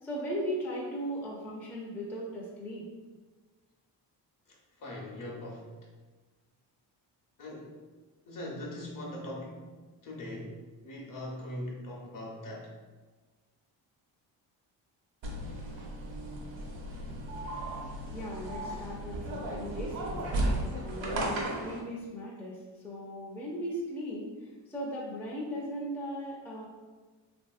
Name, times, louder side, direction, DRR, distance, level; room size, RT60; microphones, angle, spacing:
voice 1, 0.0-2.8 18.1-20.1 20.5-24.3 24.7-26.6, equal, 5° left, -4 dB, 0.4 m, -38 dB
voice 2, 4.5-5.8 7.4-7.8 8.3-9.7 10.0-10.5 10.8-12.7, left 1 dB, 45° left, -2 dB, 0.8 m, -41 dB
sound 1, 15.2-21.8, right 1 dB, 80° right, 0.8 m, -35 dB
2.9 x 2.6 x 2.4 m, 1.3 s
cardioid pair, 100°, 44 cm